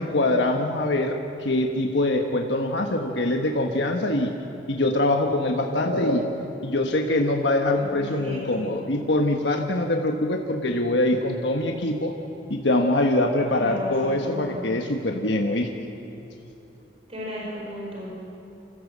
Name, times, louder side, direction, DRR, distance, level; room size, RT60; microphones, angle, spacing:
voice 1, 0.0-4.3 4.7-12.1 12.5-15.7, left 1 dB, 70° left, 2 dB, 1.3 m, -24 dB
voice 2, 7.7-8.7 13.4-14.7 17.1-18.1, left 1 dB, 35° right, -4 dB, 4.7 m, -36 dB
27.0 x 15.0 x 7.5 m, 2.8 s
head